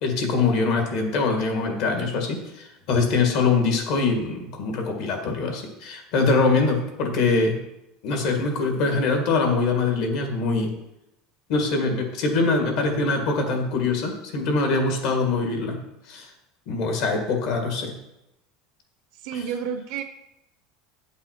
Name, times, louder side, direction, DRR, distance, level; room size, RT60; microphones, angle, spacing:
voice 1, 0.0-7.6 8.0-10.7 11.5-15.8 16.1-16.3 16.7-17.9 19.3-19.4, left 3 dB, 60° left, 3 dB, 1.7 m, -23 dB
voice 2, 19.2-20.0, right 7 dB, 60° right, 6 dB, 0.6 m, -30 dB
9.2 x 5.5 x 4.5 m, 0.88 s
cardioid pair, 165°, 0 cm